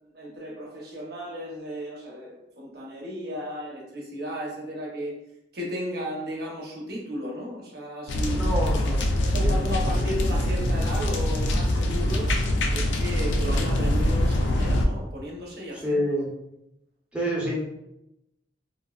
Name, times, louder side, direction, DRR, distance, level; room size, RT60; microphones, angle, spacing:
voice 1, 0.0-5.2 5.5-8.5 9.2-12.3 12.7-16.0, equal, 60° right, -2 dB, 0.7 m, -34 dB
sound 1, 8.1-14.8, left 1 dB, 85° left, 0.4 m, -24 dB
voice 2, 8.2-9.0 9.4-9.8 15.8-16.3 17.1-17.5, equal, 5° right, -5 dB, 0.6 m, -28 dB
3.6 x 2.0 x 2.3 m, 0.86 s
head